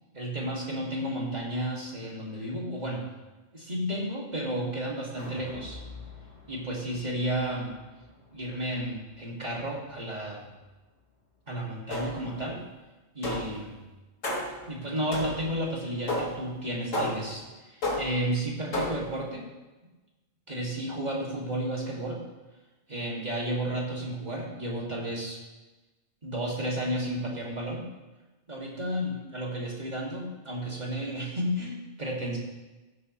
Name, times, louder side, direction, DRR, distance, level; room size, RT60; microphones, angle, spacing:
voice 1, 0.1-3.1 3.5-5.8 6.5-7.7 8.3-10.5 11.5-12.6 13.1-13.8 14.7-19.5 20.5-22.2 22.9-25.4 26.2-27.9 28.5-32.4, right 1 dB, 35° right, -3 dB, 2.6 m, -32 dB
sound 1, 5.2-11.4 11.8-11.9, left 2 dB, 60° left, 2.4 m, -49 dB
sound 2, 11.9-12.4 13.2-13.7 14.2-14.7 15.1-15.6 16.1-16.5 16.9-17.4 17.8-18.3 18.7-19.2, left 1 dB, 85° left, 2.3 m, -32 dB
15.0 x 11.0 x 3.2 m, 1.1 s
omnidirectional pair, 1.3 m